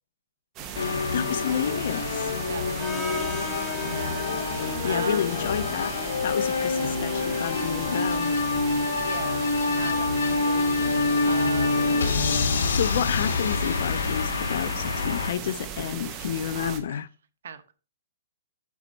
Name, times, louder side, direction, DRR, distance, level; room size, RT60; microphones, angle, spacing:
sound 1, 0.6-16.8, right 7 dB, 20° right, 0.9 m, -37 dB
sound 2, 0.7-15.3, left 4 dB, 85° left, 1.1 m, -26 dB
voice 1, 0.9-2.3 4.8-8.3 12.3-17.1, left 9 dB, 55° left, 0.4 m, -30 dB
voice 2, 2.5-3.3 3.9-4.3 4.8-5.3 9.0-9.4 9.7-10.6 11.2-12.3 16.5-17.0 17.4-17.7, right 7 dB, 70° right, 1.0 m, -38 dB
Harmonica, 2.8-10.7, left 2 dB, 5° left, 1.0 m, -40 dB
7.2 x 5.3 x 4.1 m
hypercardioid pair, 170°, 0 cm